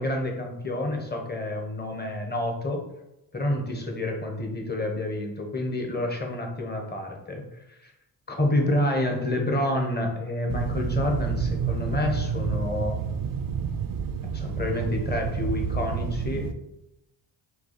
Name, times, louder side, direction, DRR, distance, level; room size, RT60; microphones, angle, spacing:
voice 1, 0.0-2.8 3.3-7.4 8.3-13.0 14.3-16.5, left 1 dB, 20° left, 2 dB, 1.2 m, -28 dB
sound 1, 10.5-16.5, right 6 dB, 45° right, 0.5 m, -29 dB
4.6 x 2.4 x 4.3 m, 0.87 s
supercardioid pair, 55°, 50 cm